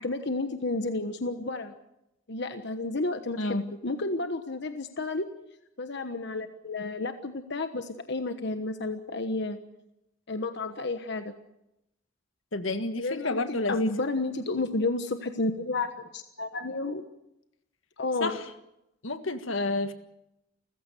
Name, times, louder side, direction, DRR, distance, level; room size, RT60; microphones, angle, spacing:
voice 1, 0.0-1.7 2.3-5.3 5.8-9.6 10.3-11.3 13.0-17.0 18.0-18.4, left 2 dB, 60° left, 8 dB, 1.3 m, -31 dB
voice 2, 3.4-3.7 12.5-13.9 18.2-18.5 19.0-19.9, left 2 dB, 80° left, 9 dB, 1.7 m, -30 dB
30.0 x 15.5 x 6.8 m, 0.87 s
head